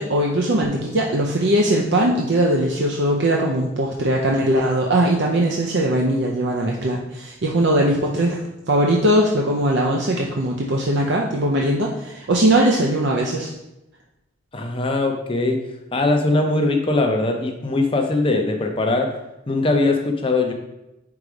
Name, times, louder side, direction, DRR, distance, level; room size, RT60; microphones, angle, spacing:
voice 1, 0.0-13.5, right 1 dB, 55° right, -1 dB, 0.6 m, -20 dB
voice 2, 14.5-15.6 15.9-19.1 19.5-20.5, left 2 dB, 25° left, 3 dB, 0.6 m, -20 dB
4.8 x 4.0 x 4.9 m, 0.93 s
head